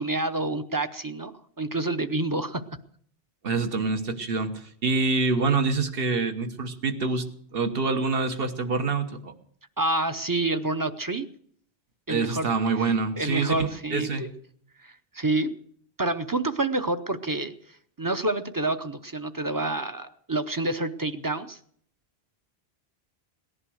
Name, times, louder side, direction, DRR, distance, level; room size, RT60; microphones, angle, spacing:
voice 1, 0.0-2.6 9.8-11.3 12.1-12.5 13.2-14.3 14.8-15.6 16.0-17.5 18.0-21.6, right 2 dB, 25° right, 10 dB, 0.6 m, -28 dB
voice 2, 3.4-7.3 7.5-9.3 12.1-14.3, right 4 dB, 65° right, 7 dB, 1.5 m, -26 dB
18.0 x 11.0 x 6.3 m, 0.63 s
omnidirectional pair, 1.0 m